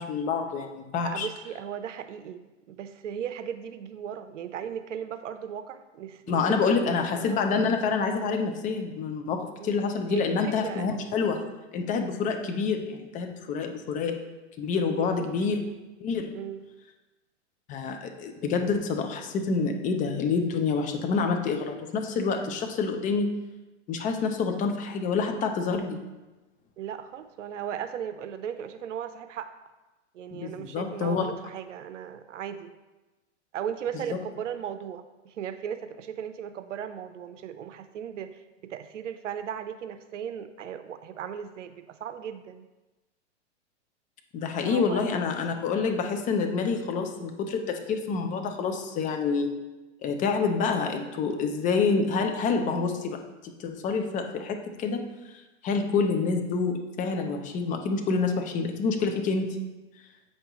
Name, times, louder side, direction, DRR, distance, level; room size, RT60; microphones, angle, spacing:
voice 1, 0.0-1.3 6.3-11.4 11.7-14.1 14.6-15.6 16.0-16.3 17.7-23.3 23.9-26.0 30.3-31.3 44.3-49.6 50.0-55.0 55.6-59.6, left 5 dB, 20° left, 4 dB, 0.6 m, -27 dB
voice 2, 1.0-7.4 9.6-9.8 10.1-11.2 14.9-15.7 16.3-16.7 26.8-29.6 30.1-32.7 33.5-42.7 44.5-45.0, right 8 dB, 90° right, 10 dB, 0.6 m, -37 dB
7.7 x 5.4 x 3.0 m, 1.1 s
hypercardioid pair, 135°, 36 cm